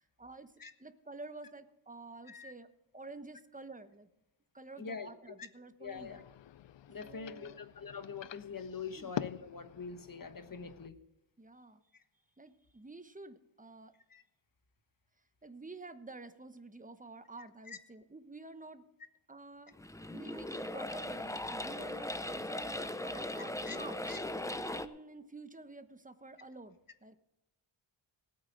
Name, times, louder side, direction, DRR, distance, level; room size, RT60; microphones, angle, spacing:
voice 1, 0.0-0.5 0.8-2.7 2.9-4.1 4.5-6.2 7.0-7.6 9.0-9.1 11.4-11.8 12.4-13.9 15.4-18.9 19.3-24.1 24.5-27.2, right 3 dB, 15° right, 10 dB, 1.0 m, -50 dB
voice 2, 4.8-5.1 5.8-6.2 6.9-11.0 11.9-12.0 14.1-14.2 17.7-17.8 23.6-23.8 24.1-24.2, left 5 dB, 45° left, 9 dB, 1.3 m, -44 dB
sound 1, 5.8-10.9, left 11 dB, 65° left, 0.5 m, -46 dB
sound 2, 19.7-24.9, left 1 dB, 5° left, 0.6 m, -39 dB
18.5 x 8.8 x 3.9 m, 0.94 s
wide cardioid pair, 75°, 47 cm